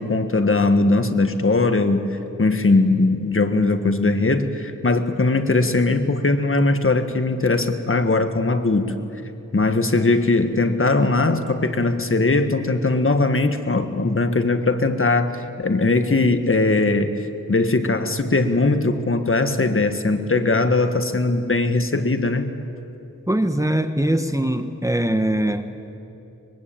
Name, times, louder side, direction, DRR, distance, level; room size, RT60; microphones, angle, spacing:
voice 1, 0.0-8.9 9.5-22.5, left 3 dB, 40° left, 8 dB, 1.6 m, -20 dB
voice 2, 23.3-25.7, right 1 dB, 10° right, 7 dB, 1.2 m, -21 dB
23.5 x 22.5 x 8.8 m, 2.9 s
wide cardioid pair, 80°, 32 cm